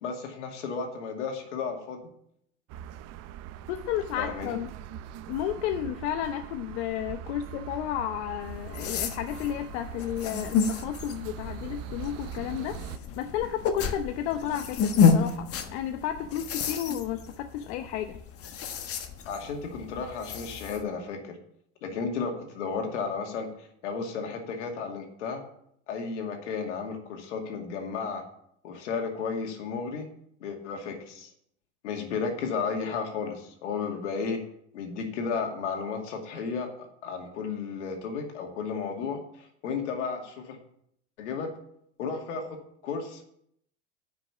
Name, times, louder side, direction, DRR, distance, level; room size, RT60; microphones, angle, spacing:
voice 1, 0.0-2.0 4.2-4.6 19.3-21.4 21.8-25.4 25.9-28.2 28.6-30.1 30.4-31.3 31.8-34.4 34.7-40.6 41.2-41.5 42.0-43.3, left 5 dB, 85° left, 3 dB, 2.4 m, -33 dB
sound 1, 2.7-13.0, right 10 dB, 45° right, 0.8 m, -42 dB
voice 2, 3.7-4.7 5.3-12.8 13.2-18.2, left 10 dB, 65° left, 7 dB, 0.9 m, -32 dB
sound 2, 8.4-20.8, left 6 dB, 40° left, 1.4 m, -30 dB
9.7 x 6.0 x 7.1 m, 0.72 s
supercardioid pair, 110°, 35 cm